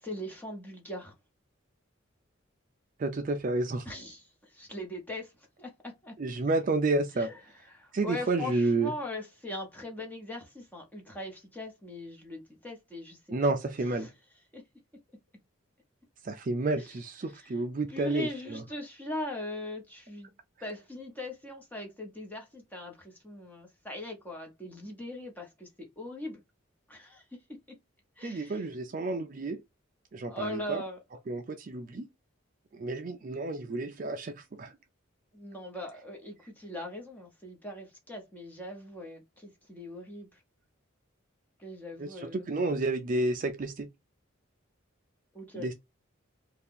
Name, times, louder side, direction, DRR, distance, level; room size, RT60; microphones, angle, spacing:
voice 1, 0.0-1.1 3.8-6.1 7.2-7.4 7.7-13.6 13.9-14.1 14.5-14.6 16.8-17.0 17.3-17.6 17.9-20.3 20.6-25.7 26.0-26.4 26.9-27.2 28.2-28.6 30.3-31.0 35.3-40.4 41.6-42.5 45.3-45.7, left 1 dB, 10° left, 1.0 m, -40 dB
voice 2, 3.0-3.9 6.2-7.3 7.9-8.9 13.3-14.1 16.2-18.6 28.2-29.6 30.1-30.8 31.3-32.1 32.7-34.7 42.0-43.9 45.6-45.7, right 2 dB, 40° right, 0.4 m, -30 dB
2.8 x 2.4 x 3.6 m
head